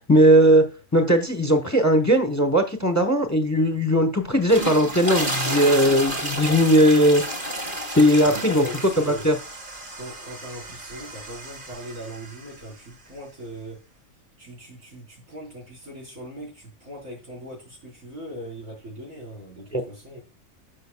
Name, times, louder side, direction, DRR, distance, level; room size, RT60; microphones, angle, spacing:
voice 1, 0.1-0.6 0.9-7.2 8.0-8.6 9.0-9.3 19.7-19.8, equal, 15° left, 7 dB, 0.9 m, -18 dB
sound 1, 4.3-12.6, right 1 dB, 35° right, 1.9 m, -31 dB
voice 2, 8.2-9.2 9.9-14.0 14.4-20.2, equal, 70° right, -1 dB, 4.7 m, -39 dB
13.0 x 5.5 x 2.2 m, 0.32 s
omnidirectional pair, 1.4 m